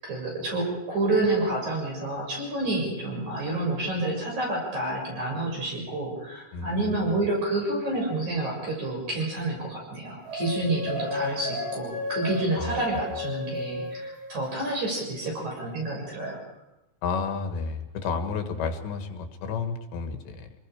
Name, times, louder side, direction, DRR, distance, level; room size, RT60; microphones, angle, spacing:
voice 1, 0.0-16.4, right 2 dB, 45° right, -1 dB, 8.1 m, -29 dB
voice 2, 6.5-7.2 12.6-12.8 17.0-20.5, left 5 dB, 90° left, 6 dB, 3.9 m, -31 dB
sound 1, 10.3-14.7, left 2 dB, 80° right, 8.1 m, -34 dB
26.5 x 20.0 x 5.1 m, 0.93 s
omnidirectional pair, 4.9 m